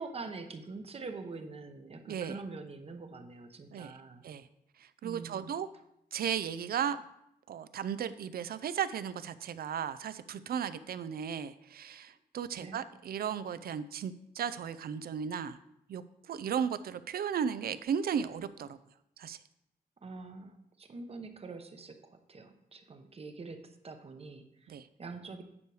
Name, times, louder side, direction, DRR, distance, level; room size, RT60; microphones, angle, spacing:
voice 1, 0.0-4.2 5.0-5.5 12.6-12.8 20.0-24.7 25.0-25.4, right 3 dB, 35° right, 7 dB, 0.8 m, -45 dB
voice 2, 4.8-5.7 6.1-7.0 7.5-15.6 15.9-18.8 19.2-19.4 24.7-24.9, right 8 dB, 65° right, 14 dB, 0.5 m, -35 dB
9.6 x 4.7 x 4.8 m, 0.80 s
wide cardioid pair, 125°, 17 cm